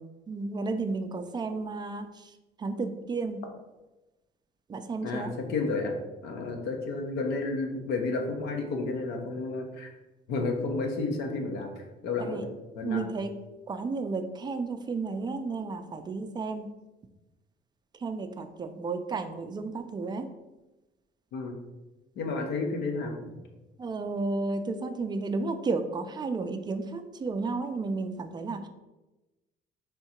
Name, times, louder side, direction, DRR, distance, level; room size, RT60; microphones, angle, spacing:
voice 1, 0.3-3.4 4.7-5.3 12.2-12.4 12.8-13.3 13.7-16.7 17.9-20.3 23.8-28.7, right 3 dB, 25° right, 8 dB, 0.4 m, -32 dB
voice 2, 5.0-5.9 6.2-9.9 10.3-12.5 12.8-13.1 21.3-21.5 22.2-23.3, left 3 dB, 80° left, 3 dB, 0.9 m, -31 dB
3.7 x 2.7 x 4.3 m, 1.1 s
cardioid pair, 110°, 17 cm